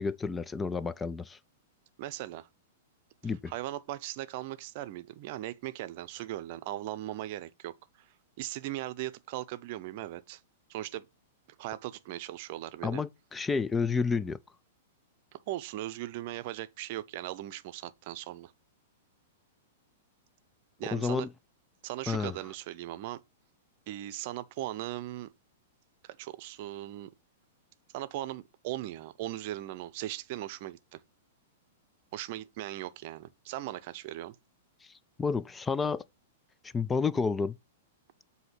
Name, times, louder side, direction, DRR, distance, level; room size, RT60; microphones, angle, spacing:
voice 1, 0.0-1.4 3.2-3.5 12.8-14.4 20.8-21.3 22.1-22.4 34.8-34.9 35.2-36.0 36.6-37.5, left 5 dB, 15° left, 0.3 m, -30 dB
voice 2, 2.0-2.5 3.5-7.8 8.4-10.4 10.7-11.1 11.6-13.0 15.3-18.5 20.8-21.3 21.8-23.2 23.9-25.3 26.0-27.1 27.9-31.0 32.1-34.4, right 15 dB, 50° right, 0.6 m, -38 dB
7.8 x 2.8 x 5.8 m
hypercardioid pair, 110°, 0 cm